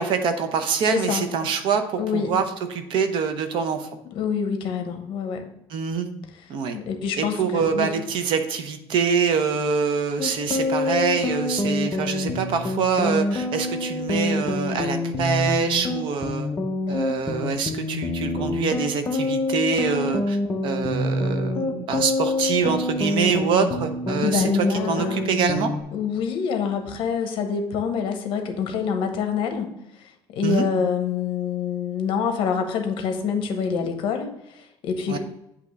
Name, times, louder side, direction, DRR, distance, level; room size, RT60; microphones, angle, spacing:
voice 1, 0.0-2.4 2.7-3.9 5.7-6.1 6.5-6.8 7.2-16.5 16.9-20.4 20.6-24.4 24.9-25.7 30.4-30.7 35.1-35.2, right 6 dB, 55° right, 8 dB, 0.7 m, -25 dB
voice 2, 0.8-1.3 2.0-2.3 4.0-5.5 6.7-7.9 24.2-25.3 25.9-29.7 30.3-35.2, left 6 dB, 55° left, 5 dB, 0.9 m, -26 dB
sound 1, 10.2-25.8, left 2 dB, 25° left, 0.7 m, -26 dB
8.4 x 2.9 x 5.1 m, 0.86 s
cardioid pair, 165°, 10 cm